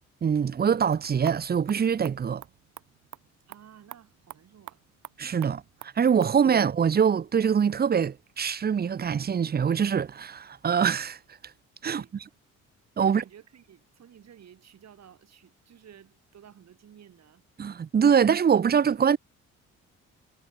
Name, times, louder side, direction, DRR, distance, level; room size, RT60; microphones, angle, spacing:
voice 1, 0.2-2.4 5.2-11.2 11.8-12.0 13.0-13.2 17.6-19.2, right 7 dB, 30° right, 0.7 m, -24 dB
sound 1, 0.7-6.4, right 14 dB, 80° right, 3.4 m, -49 dB
voice 2, 3.5-4.8 11.9-12.2 13.0-17.4, right 9 dB, 60° right, 5.7 m, -53 dB
cardioid pair, 90°, 30 cm